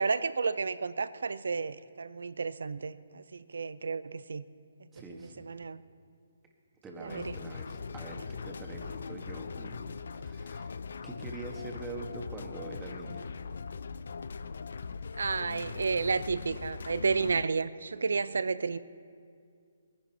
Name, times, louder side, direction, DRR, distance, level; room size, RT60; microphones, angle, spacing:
voice 1, 0.0-4.4 5.1-5.8 6.9-7.4 15.2-18.8, right 4 dB, 70° right, 16 dB, 0.5 m, -32 dB
voice 2, 4.9-5.4 6.8-10.7 11.0-13.3, right 2 dB, 15° right, 1 dB, 1.7 m, -44 dB
sound 1, 7.1-17.4, left 5 dB, 65° left, 0.5 m, -41 dB
20.0 x 10.5 x 4.3 m, 2.2 s
figure-of-eight pair, 140°, 0 cm